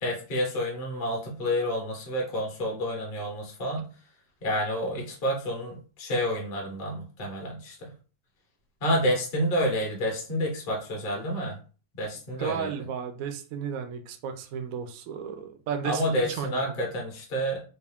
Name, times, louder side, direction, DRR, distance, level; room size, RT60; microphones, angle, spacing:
voice 1, 0.0-3.9 4.4-7.9 8.8-11.6 11.9-12.7 15.8-17.6, equal, 40° left, -1 dB, 0.8 m, -29 dB
voice 2, 12.4-16.6, right 7 dB, 80° right, 6 dB, 0.7 m, -34 dB
3.5 x 2.6 x 3.5 m, 0.38 s
omnidirectional pair, 2.1 m